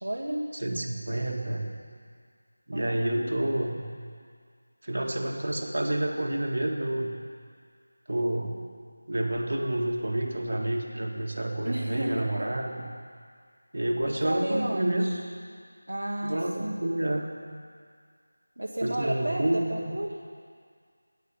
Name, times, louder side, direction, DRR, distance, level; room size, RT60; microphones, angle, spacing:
voice 1, 0.0-0.4 2.7-3.3 11.6-12.5 14.1-15.2 15.9-16.8 18.6-20.1, right 1 dB, 80° right, -2 dB, 1.5 m, -33 dB
voice 2, 0.6-1.7 2.7-3.8 4.8-7.1 8.1-8.6 9.1-12.9 13.7-15.1 16.2-17.3 18.8-19.7, right 1 dB, 65° right, 1 dB, 2.0 m, -29 dB
11.5 x 9.3 x 8.9 m, 2.1 s
figure-of-eight pair, 175°, 0 cm